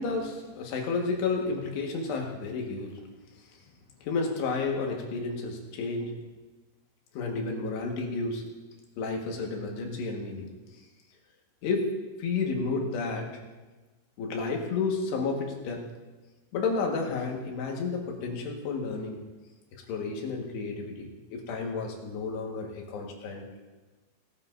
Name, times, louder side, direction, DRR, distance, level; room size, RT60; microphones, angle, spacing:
voice 1, 0.0-3.0 4.0-6.2 7.1-8.5 9.0-10.5 11.6-13.4 14.2-15.9 16.5-19.2 19.7-23.5, left 4 dB, 75° left, 1 dB, 3.7 m, -31 dB
19.5 x 13.5 x 2.6 m, 1.2 s
omnidirectional pair, 5.0 m